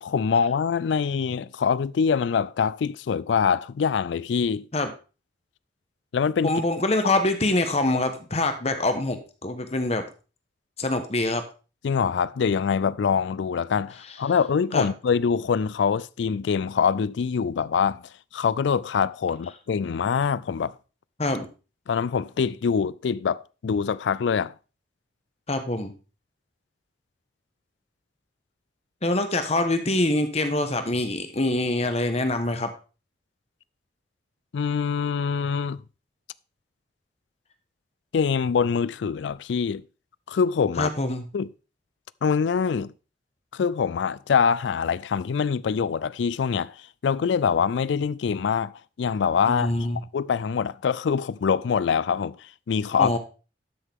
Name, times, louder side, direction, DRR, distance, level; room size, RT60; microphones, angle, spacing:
voice 1, 0.0-4.7 6.1-6.5 11.8-18.0 18.3-20.7 21.9-24.5 34.5-35.8 38.1-39.8 40.3-40.9 41.3-41.5 42.2-42.9 43.5-46.7 47.0-48.7 49.0-49.7 50.1-53.1, left 6 dB, 80° left, 0.4 m, -24 dB
voice 2, 6.4-10.0 10.8-11.4 14.7-14.9 21.2-21.5 25.5-25.9 29.0-32.7 40.8-41.3 49.5-50.0 53.0-53.2, left 2 dB, 35° left, 1.2 m, -25 dB
12.0 x 6.7 x 3.6 m
head